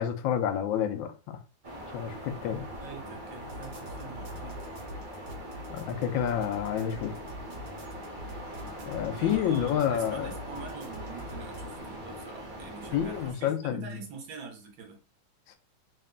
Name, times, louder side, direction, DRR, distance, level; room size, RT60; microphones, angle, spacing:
voice 1, 0.0-1.4 1.9-2.6 5.7-7.2 8.8-10.3 12.9-14.0 15.5-15.6, left 9 dB, 90° left, 1.4 m, -29 dB
sound 1, 1.6-13.3, equal, 40° right, 0.7 m, -42 dB
voice 2, 2.8-4.6 9.1-15.0, right 5 dB, 90° right, 1.7 m, -45 dB
sound 2, 3.4-11.7, left 1 dB, 65° right, 1.9 m, -45 dB
4.1 x 2.2 x 3.7 m
omnidirectional pair, 2.1 m